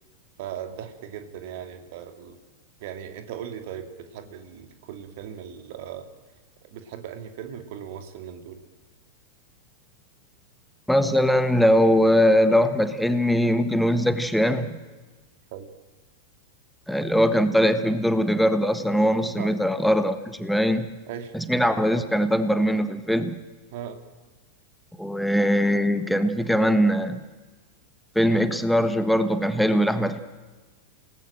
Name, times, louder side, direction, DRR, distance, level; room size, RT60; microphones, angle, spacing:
voice 1, 0.4-2.4 2.8-6.1 6.6-8.6 15.5-15.7 19.2-19.5 21.1-21.3 23.7-24.0, right 9 dB, 50° right, 7 dB, 2.6 m, -38 dB
voice 2, 10.9-14.8 16.9-20.9 21.3-23.4 25.0-27.2 28.1-30.2, equal, ahead, 10 dB, 1.3 m, -21 dB
29.0 x 19.0 x 7.6 m, 1.3 s
figure-of-eight pair, 90°, 0 cm